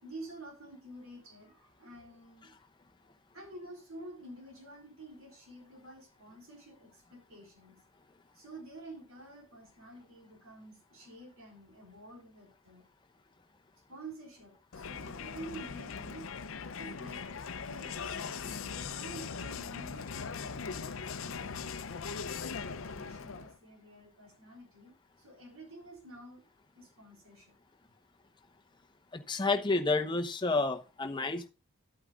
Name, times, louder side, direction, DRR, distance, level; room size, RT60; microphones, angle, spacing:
voice 1, 0.0-2.5 3.3-7.8 8.3-12.9 13.9-16.3 16.8-21.9 22.5-26.4 26.8-27.5, right 1 dB, 85° right, 4.0 m, -50 dB
Crowd, 14.7-23.6, left 5 dB, 75° left, 0.6 m, -40 dB
voice 2, 29.1-31.5, left 3 dB, 20° left, 0.8 m, -30 dB
12.5 x 8.8 x 2.4 m
head